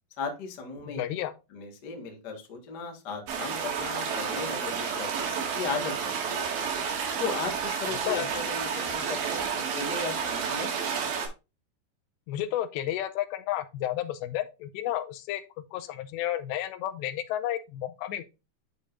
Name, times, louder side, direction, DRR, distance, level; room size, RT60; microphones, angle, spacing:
voice 1, 0.2-1.0 1.5-6.5 7.2-10.7, left 4 dB, 70° left, 0.9 m, -36 dB
voice 2, 0.9-1.3 7.9-8.2 12.3-15.4 15.7-18.2, left 12 dB, 85° left, 2.9 m, -32 dB
sound 1, 3.3-11.3, right 6 dB, 85° right, 4.3 m, -31 dB
11.0 x 5.2 x 2.6 m
omnidirectional pair, 4.9 m